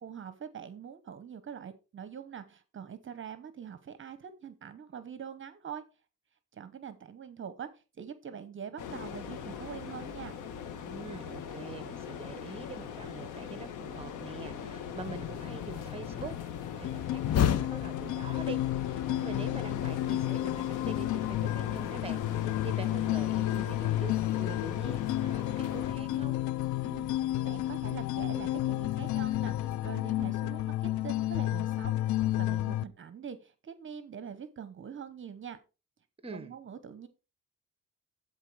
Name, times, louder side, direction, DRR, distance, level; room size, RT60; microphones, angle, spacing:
voice 1, 0.0-5.8 6.5-10.4 26.8-35.6 36.3-37.1, right 7 dB, 40° right, 0.9 m, -44 dB
sound 1, 8.8-25.9, left 7 dB, 90° left, 1.3 m, -40 dB
voice 2, 10.8-16.4 16.8-26.4 36.2-36.5, right 4 dB, 20° right, 1.1 m, -44 dB
sound 2, 15.0-29.8, left 9 dB, 55° left, 0.8 m, -38 dB
sound 3, 16.8-32.8, left 14 dB, 75° left, 0.5 m, -31 dB
12.0 x 4.0 x 4.7 m
cardioid pair, 90°, 30 cm